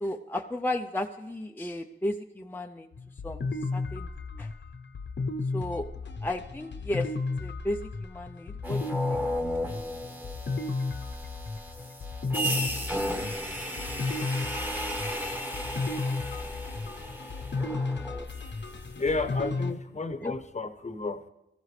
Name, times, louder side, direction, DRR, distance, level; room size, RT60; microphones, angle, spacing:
voice 1, 0.0-2.9 3.2-3.4 3.7-4.5 5.5-5.9 6.2-7.1 7.4-9.2 20.2-20.3, left 1 dB, 10° left, 4 dB, 0.5 m, -34 dB
sound 1, 2.9-19.7, left 3 dB, 65° left, 0.8 m, -34 dB
sound 2, 8.6-18.7, equal, 10° right, 1.4 m, -34 dB
voice 2, 19.0-21.3, left 3 dB, 35° left, 10 dB, 0.9 m, -32 dB
22.0 x 14.5 x 3.3 m, 0.92 s
wide cardioid pair, 115°, 20 cm